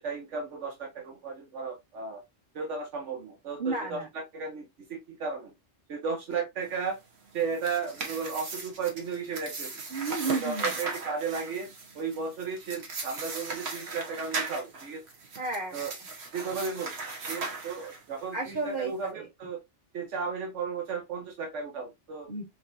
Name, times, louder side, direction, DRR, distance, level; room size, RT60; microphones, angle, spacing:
voice 1, 0.0-2.2 2.5-5.5 5.9-7.0 7.3-9.7 10.3-11.7 11.9-15.0 15.7-15.9 16.3-16.9 17.3-19.6 19.9-22.3, right 5 dB, 85° right, 1.2 m, -34 dB
voice 2, 3.6-4.1 9.9-10.8 15.4-15.9 18.3-19.3 22.3-22.4, right 4 dB, 45° right, 2.3 m, -32 dB
sound 1, 7.3-18.2, right 3 dB, 65° right, 1.3 m, -37 dB
5.0 x 2.9 x 2.6 m
omnidirectional pair, 1.2 m